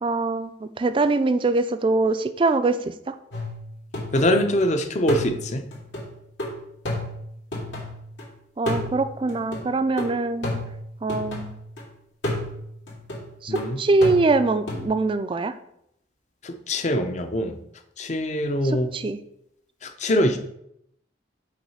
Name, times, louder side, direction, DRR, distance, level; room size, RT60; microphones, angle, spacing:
voice 1, 0.0-3.2 8.6-10.6 11.0-11.5 13.4-15.5 18.6-19.2, right 3 dB, 30° right, 11 dB, 0.3 m, -23 dB
sound 1, 3.3-4.7 5.1-8.2 8.7-11.8 12.2-14.9, left 1 dB, 85° left, 2.3 m, -32 dB
voice 2, 4.1-5.7 13.5-13.8 16.4-17.6 18.0-18.9 19.8-20.4, left 1 dB, 40° left, 7 dB, 0.6 m, -23 dB
5.9 x 3.1 x 5.6 m, 0.75 s
head